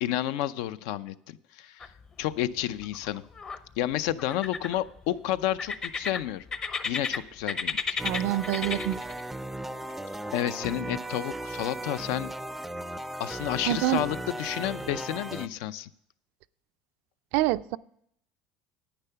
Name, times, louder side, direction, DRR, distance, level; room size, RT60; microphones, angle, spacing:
voice 1, 0.0-1.9 2.2-3.2 3.8-6.4 6.8-7.8 10.3-12.3 13.2-15.9, left 12 dB, 80° left, 14 dB, 0.5 m, -30 dB
sound 1, 1.8-2.4 2.6-3.6 4.2-5.0 5.6-7.2 7.5-9.2, left 5 dB, 30° left, 0.7 m, -32 dB
sound 2, 8.0-15.5, right 1 dB, 5° right, 0.4 m, -36 dB
voice 2, 8.0-9.0 13.7-14.0 17.3-17.8, right 16 dB, 70° right, 15 dB, 0.4 m, -26 dB
10.0 x 9.2 x 5.7 m, 0.70 s
cardioid pair, 140°, 3 cm